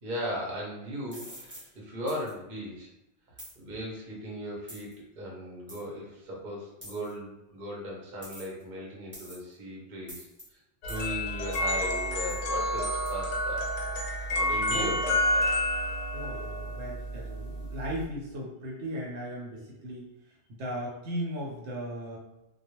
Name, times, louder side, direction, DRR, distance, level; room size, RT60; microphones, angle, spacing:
voice 1, 0.0-2.9 3.5-13.6 14.4-15.5, equal, 50° right, -2 dB, 0.7 m, -38 dB
sound 1, 1.1-1.7 2.1-2.3 3.4-3.6 4.7-4.9 5.7-5.8 6.8-7.1 8.2-8.6 9.1-9.5 10.1-10.4 10.9-11.1 11.5-11.7 12.3-12.4 13.1-13.2, equal, 10° right, 0.7 m, -46 dB
sound 2, 10.8-18.0, left 1 dB, 85° left, 0.9 m, -30 dB
voice 2, 14.6-15.0 16.1-22.2, equal, 75° right, -3 dB, 1.0 m, -37 dB
2.3 x 2.0 x 2.9 m, 0.91 s
omnidirectional pair, 1.2 m